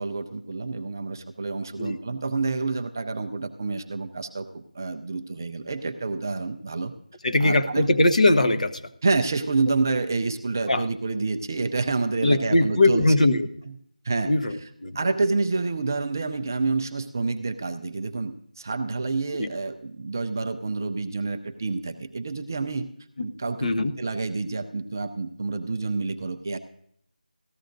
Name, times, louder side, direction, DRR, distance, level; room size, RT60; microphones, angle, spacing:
voice 1, 0.0-6.9 7.4-7.9 9.0-13.1 14.0-14.7 14.9-22.9 23.2-26.6, right 3 dB, 20° right, 7 dB, 0.4 m, -28 dB
voice 2, 7.2-8.7 10.7-10.8 12.2-13.5 14.2-15.0 19.4-19.5 23.2-23.3 23.6-23.9, left 2 dB, 50° left, 8 dB, 0.9 m, -21 dB
18.0 x 14.0 x 2.6 m, 0.68 s
figure-of-eight pair, 175°, 5 cm